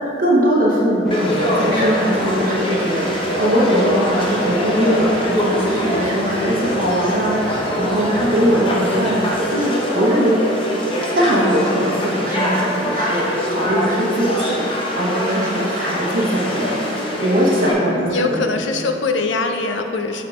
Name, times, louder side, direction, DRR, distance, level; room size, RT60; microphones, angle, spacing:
voice 1, 0.2-10.3 11.1-14.6 15.0-16.8 17.2-18.5, equal, 50° right, -4 dB, 0.8 m, -20 dB
sound 1, 1.0-9.3, right 1 dB, ahead, 1.0 m, -32 dB
Conversation / Crowd, 1.1-17.7, equal, 30° left, 0.9 m, -23 dB
voice 2, 17.9-20.2, left 3 dB, 80° left, 5 dB, 0.5 m, -22 dB
6.8 x 3.7 x 4.8 m, 2.8 s
head